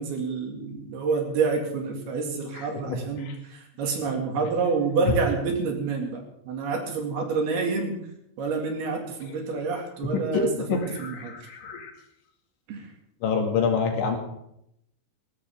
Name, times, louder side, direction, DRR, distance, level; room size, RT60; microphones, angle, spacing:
voice 1, 0.0-8.0 8.4-11.5 12.7-12.9, right 4 dB, 60° right, 2 dB, 3.9 m, -28 dB
voice 2, 2.5-3.3 10.0-11.9 13.2-14.2, left 5 dB, 80° left, 2 dB, 4.5 m, -27 dB
20.0 x 16.0 x 3.6 m, 0.77 s
omnidirectional pair, 5.3 m